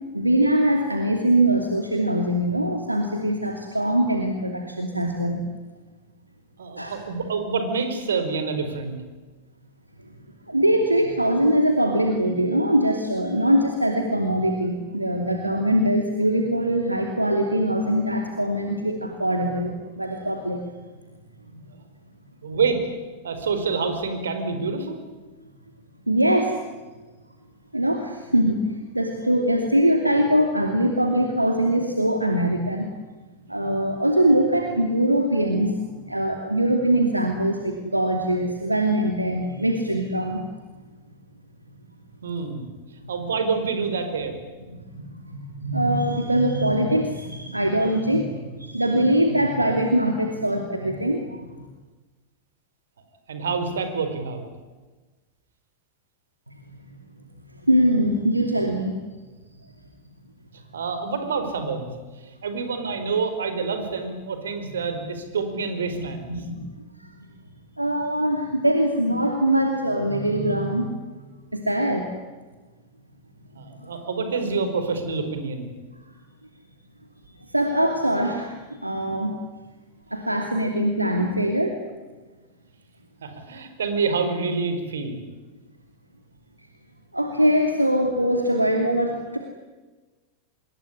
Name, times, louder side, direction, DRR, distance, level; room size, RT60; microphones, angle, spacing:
voice 1, 0.1-5.4 6.8-7.0 10.5-20.6 21.5-21.6 26.1-26.6 27.7-32.9 33.5-40.4 44.7-51.6 56.5-56.6 57.6-59.0 64.6-64.7 65.9-66.7 67.0-67.2 67.8-71.0 71.5-72.1 73.8-74.0 77.5-79.3 80.1-81.8 87.1-89.4, right 1 dB, 85° right, 3 dB, 2.6 m, -22 dB
voice 2, 6.6-8.9 22.4-22.8 23.2-25.0 42.2-42.6 43.1-44.3 53.3-54.4 60.7-61.9 62.4-66.3 73.5-75.7 83.2-85.2, right 4 dB, 65° right, 8 dB, 4.8 m, -27 dB
26.0 x 22.5 x 9.9 m, 1.2 s
figure-of-eight pair, 90°, 0 cm